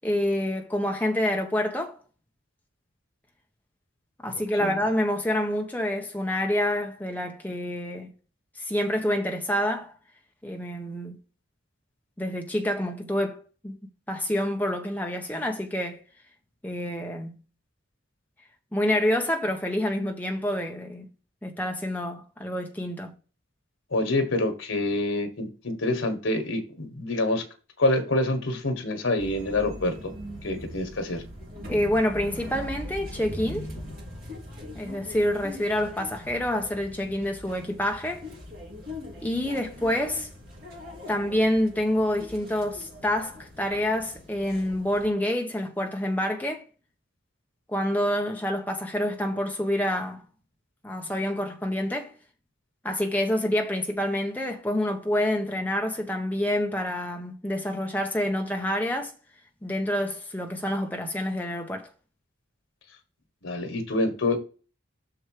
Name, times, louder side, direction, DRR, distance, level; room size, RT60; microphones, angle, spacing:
voice 1, 0.0-2.0 4.2-8.1 8.6-9.9 10.4-11.2 12.2-13.8 14.1-16.0 16.6-17.4 18.7-21.1 21.4-23.1 31.7-33.7 34.7-38.2 39.2-40.3 41.1-46.6 47.7-50.2 50.8-52.1 52.8-59.1 59.6-61.9, left 1 dB, 10° left, 1.1 m, -27 dB
voice 2, 4.3-4.8 23.9-27.4 27.8-30.1 30.4-31.2 63.4-64.4, left 2 dB, 85° left, 1.4 m, -27 dB
sound 1, 29.2-45.1, left 1 dB, 45° right, 3.3 m, -41 dB
6.3 x 4.9 x 4.7 m
head